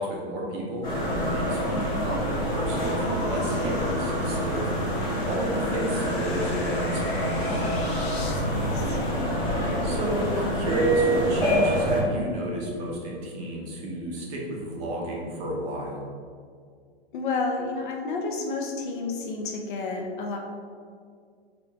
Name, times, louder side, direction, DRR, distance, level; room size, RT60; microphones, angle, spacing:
voice 1, 0.0-4.6 5.3-7.8 9.8-16.0, equal, 25° right, -2 dB, 0.7 m, -32 dB
sound 1, 0.8-12.0, equal, 10° left, 0.9 m, -26 dB
sound 2, 1.0-8.4, left 2 dB, 70° left, 1.0 m, -39 dB
voice 2, 8.5-9.4 17.1-20.4, left 3 dB, 50° left, 2 dB, 0.6 m, -31 dB
4.9 x 2.5 x 3.4 m, 2.1 s
hypercardioid pair, 155°, 32 cm